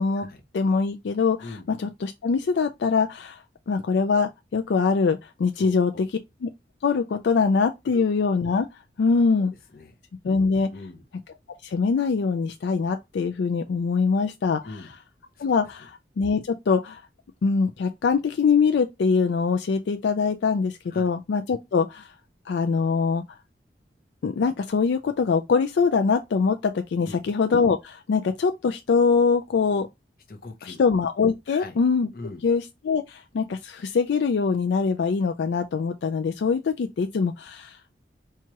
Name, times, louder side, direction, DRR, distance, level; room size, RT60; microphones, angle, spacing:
voice 1, 0.5-3.4 3.7-6.1 6.4-6.5 6.8-8.7 9.0-9.5 10.2-10.7 11.6-14.6 15.4-17.0 17.4-22.1 22.5-23.2 24.2-29.9 30.7-32.1 32.4-37.8, left 5 dB, 80° left, 0.4 m, -23 dB
voice 2, 5.5-6.0 7.9-8.0 9.4-9.5 9.7-9.9 10.7-11.0 14.6-14.9 15.3-15.5 20.9-21.1 27.0-27.3 30.3-30.8 31.5-31.8 32.1-32.4, left 3 dB, 50° left, 0.7 m, -41 dB
4.5 x 2.3 x 2.8 m
head